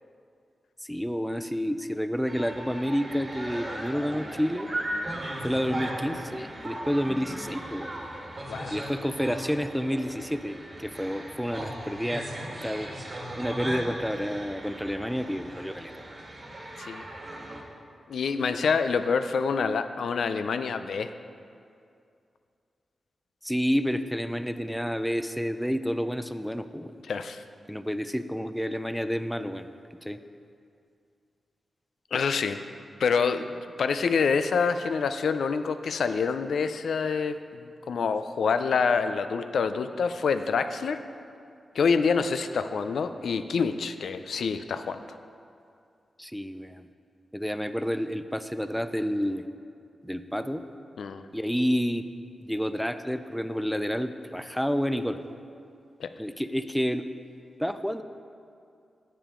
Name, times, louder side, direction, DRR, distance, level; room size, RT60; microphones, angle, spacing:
voice 1, 0.8-4.7 5.4-7.9 8.7-12.3 12.6-12.9 13.4-15.9 23.4-26.9 27.7-29.7 30.0-30.2 46.2-46.9 47.3-49.4 50.0-50.6 51.3-52.1 52.4-55.2 56.2-57.1 57.6-58.0, equal, ahead, 10 dB, 0.4 m, -29 dB
sound 1, 2.3-17.6, right 1 dB, 40° right, 1.4 m, -37 dB
voice 2, 18.1-21.1 27.1-27.4 32.1-32.6 33.0-37.6 37.9-41.0 41.8-45.0 51.0-51.3 56.0-56.1, left 5 dB, 80° left, 10 dB, 0.3 m, -26 dB
10.0 x 6.8 x 3.7 m, 2.4 s
cardioid pair, 85°, 0 cm